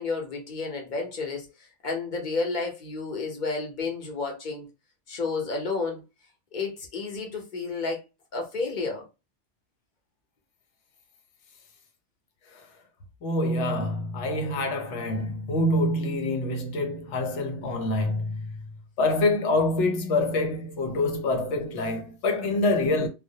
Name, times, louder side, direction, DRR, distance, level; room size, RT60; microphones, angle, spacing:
voice 1, 0.0-4.7 5.1-6.0 6.5-8.0 8.3-9.1, left 4 dB, 45° left, 0.8 m, -31 dB
voice 2, 13.2-18.7 19.0-23.1, left 2 dB, 80° left, 0.9 m, -26 dB
2.2 x 2.1 x 2.7 m
omnidirectional pair, 1.2 m